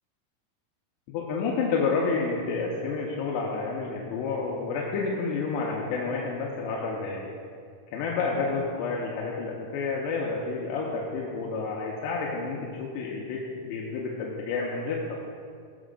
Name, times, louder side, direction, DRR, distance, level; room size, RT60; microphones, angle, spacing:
voice 1, 1.1-7.3 7.9-15.2, left 4 dB, 90° left, -3 dB, 2.9 m, -30 dB
16.0 x 6.2 x 2.5 m, 2.2 s
omnidirectional pair, 4.9 m